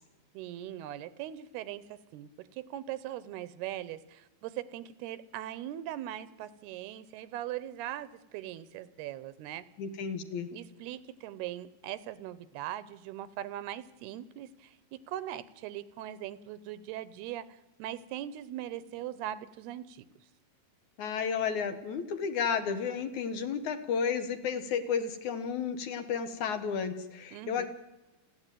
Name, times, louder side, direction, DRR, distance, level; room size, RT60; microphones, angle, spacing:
voice 1, 0.3-9.7 10.5-20.1 27.3-27.7, right 12 dB, 85° right, 17 dB, 2.8 m, -40 dB
voice 2, 9.8-10.5 21.0-27.7, left 6 dB, 60° left, 10 dB, 2.4 m, -32 dB
30.0 x 10.5 x 9.1 m, 1.0 s
omnidirectional pair, 4.6 m